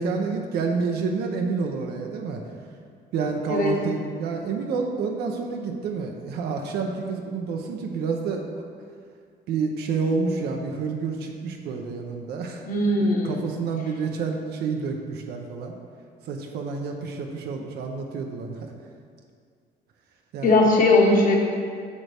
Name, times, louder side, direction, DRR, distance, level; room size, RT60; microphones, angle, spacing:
voice 1, 0.0-2.4 3.1-8.4 9.5-12.6 13.0-15.7 16.3-18.7 20.3-20.6, right 4 dB, 75° right, 2 dB, 0.8 m, -29 dB
voice 2, 12.7-13.4 20.4-21.4, left 2 dB, 55° left, -1 dB, 1.5 m, -19 dB
8.4 x 6.1 x 3.4 m, 2.2 s
cardioid pair, 110°, 17 cm